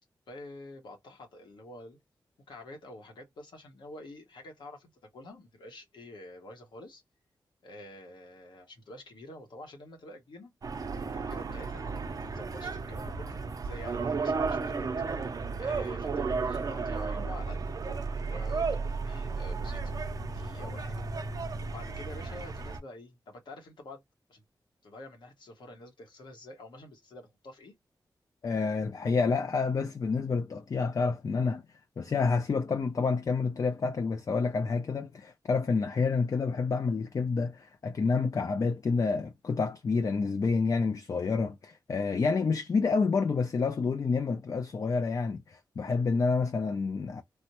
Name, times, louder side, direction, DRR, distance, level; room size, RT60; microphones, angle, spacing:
voice 1, 0.3-2.0 2.5-7.0 7.6-10.5 11.1-14.9 15.6-19.8 20.3-21.0 21.7-24.0 24.3-24.4 24.8-27.7, left 1 dB, 90° left, 1.0 m, -48 dB
sound 1, 10.6-22.8, right 4 dB, 50° right, 0.5 m, -33 dB
voice 2, 28.4-31.6 32.0-47.2, left 4 dB, 45° left, 0.4 m, -28 dB
3.3 x 2.1 x 2.8 m
wide cardioid pair, 90°, 8 cm